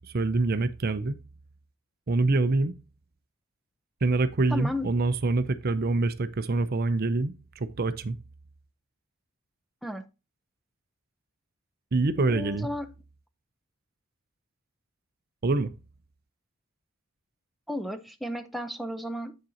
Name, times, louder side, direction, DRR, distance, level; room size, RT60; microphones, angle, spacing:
voice 1, 0.1-1.2 2.1-2.7 4.0-8.2 11.9-12.7 15.4-15.7, right 3 dB, 45° right, 0.5 m, -25 dB
voice 2, 4.5-4.9 9.8-10.0 12.2-12.9 17.7-19.4, left 1 dB, ahead, 0.6 m, -33 dB
8.8 x 6.5 x 2.8 m
head